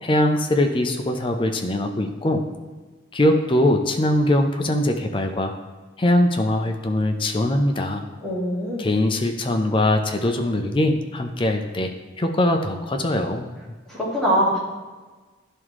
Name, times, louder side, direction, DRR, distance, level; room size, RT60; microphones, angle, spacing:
voice 1, 0.0-2.4 3.1-5.5 6.0-8.1 8.8-11.9 12.2-13.5, left 1 dB, 25° left, 5 dB, 0.5 m, -21 dB
voice 2, 8.2-8.8 13.9-14.6, equal, 5° left, -8 dB, 2.0 m, -22 dB
10.5 x 3.6 x 3.1 m, 1.3 s
head